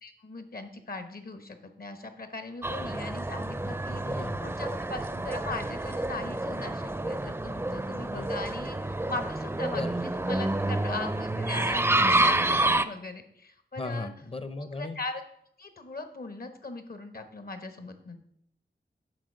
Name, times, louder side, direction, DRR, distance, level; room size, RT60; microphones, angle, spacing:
voice 1, 0.0-8.8 9.1-14.1 14.6-15.2 15.6-18.2, left 3 dB, 60° left, 9 dB, 1.0 m, -39 dB
sound 1, 2.6-12.9, right 2 dB, 15° right, 0.4 m, -28 dB
voice 2, 4.0-4.4 8.1-8.3 9.7-10.0 13.8-15.0, left 2 dB, 35° left, 12 dB, 0.6 m, -36 dB
7.6 x 4.6 x 6.5 m, 0.74 s
wide cardioid pair, 75°, 18 cm